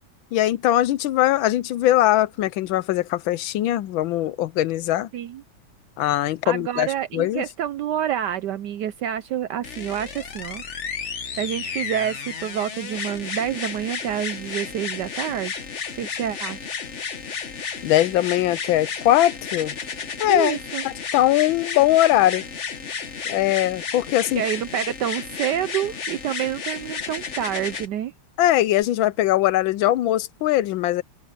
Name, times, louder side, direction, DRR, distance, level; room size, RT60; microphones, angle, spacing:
voice 1, 0.3-5.1 6.0-6.9 7.1-7.4 17.8-19.7 20.2-20.6 20.8-22.4 23.3-24.4 28.4-31.0, left 14 dB, 75° left, 1.3 m, -21 dB
voice 2, 6.4-10.6 11.4-15.6 16.0-16.7 20.3-20.8 24.3-28.1, right 10 dB, 75° right, 1.0 m, -28 dB
sound 1, 9.6-27.9 28.8-28.9, left 6 dB, 40° left, 1.3 m, -33 dB
open air
omnidirectional pair, 2.4 m